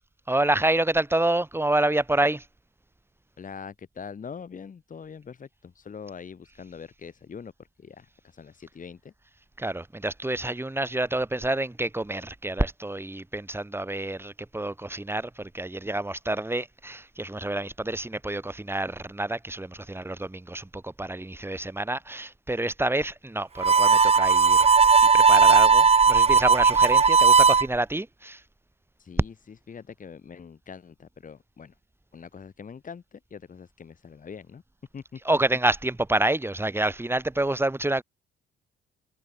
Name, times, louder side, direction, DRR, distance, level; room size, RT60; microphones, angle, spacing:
voice 1, 0.3-2.5 9.6-24.7 25.0-28.4 35.2-38.0, right 1 dB, 10° right, 7.2 m, -28 dB
voice 2, 3.4-7.5 7.8-9.1 29.0-29.3 29.7-31.7 32.1-34.6 34.9-35.2, left 6 dB, 40° left, 3.5 m, -43 dB
Harmonica, 23.6-27.6, right 5 dB, 30° right, 1.3 m, -17 dB
cardioid pair, 90°, 20 cm